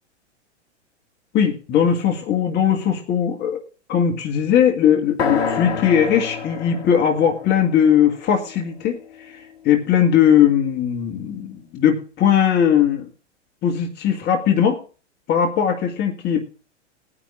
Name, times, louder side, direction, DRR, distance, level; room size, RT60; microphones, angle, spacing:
voice 1, 1.3-3.6 3.9-9.4 9.6-13.1 13.6-14.8 15.3-16.4, left 8 dB, 30° left, 3 dB, 1.7 m, -19 dB
sound 1, 5.2-9.1, left 5 dB, 60° left, 2.2 m, -28 dB
20.5 x 10.0 x 2.5 m, 0.37 s
figure-of-eight pair, 100°, 36 cm